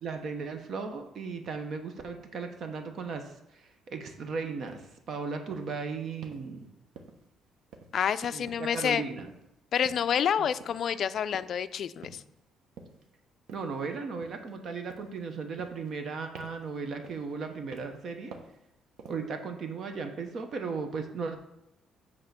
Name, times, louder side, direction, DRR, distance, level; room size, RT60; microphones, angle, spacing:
voice 1, 0.0-6.7 8.3-9.3 10.4-10.5 13.5-18.3 19.1-21.4, right 5 dB, 45° right, 6 dB, 0.8 m, -36 dB
sound 1, 4.7-4.9 5.5-5.8 6.2-6.5 7.0-7.4 7.7-8.1 8.5-8.8 9.2-9.5 9.8-10.1 10.6-10.9 11.3-11.6 12.0-12.4 12.8-13.1 13.5-13.8 14.2-14.6 14.9-15.2 15.6-16.1 16.3-16.7 17.0-17.3 17.7-18.0 18.3-18.6 19.0-19.3, right 4 dB, 75° right, 1.0 m, -49 dB
voice 2, 7.9-9.0 9.7-12.2, left 8 dB, 50° left, 12 dB, 0.3 m, -28 dB
8.1 x 3.5 x 6.6 m, 0.88 s
cardioid pair, 150°, 0 cm